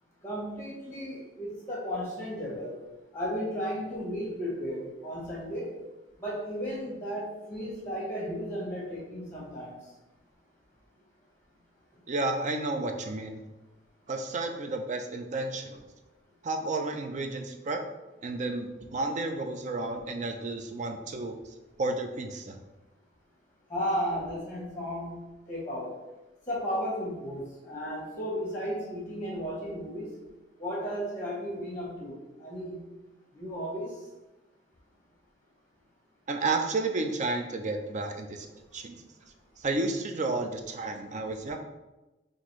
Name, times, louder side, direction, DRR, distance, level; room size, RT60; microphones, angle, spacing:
voice 1, 0.2-2.8 3.1-5.8 6.2-9.7 23.7-26.0 26.5-30.1 30.6-32.8 33.3-34.0, equal, 15° left, -5 dB, 1.2 m, -34 dB
voice 2, 12.1-13.4 14.1-15.8 16.4-17.8 18.2-21.4 21.8-22.6 36.3-38.5 38.7-39.0 39.6-41.6, right 2 dB, 40° right, 5 dB, 0.4 m, -31 dB
5.8 x 2.6 x 3.0 m, 1.1 s
head